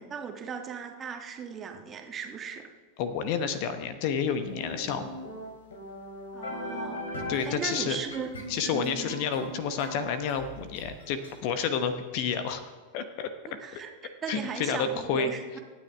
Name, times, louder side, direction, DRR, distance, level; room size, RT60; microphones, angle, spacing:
voice 1, 0.0-2.7 6.3-7.1 7.4-8.3 8.7-9.2 13.6-15.6, right 6 dB, 25° right, 4 dB, 1.7 m, -37 dB
voice 2, 3.0-5.1 7.3-8.0 8.5-12.6 12.9-13.3 13.7-13.8 14.3-15.3, left 6 dB, 45° left, 10 dB, 1.1 m, -30 dB
sound 1, 4.5-11.3, equal, 65° left, 3.8 m, -39 dB
26.5 x 9.6 x 3.5 m, 1.4 s
figure-of-eight pair, 90°, 0 cm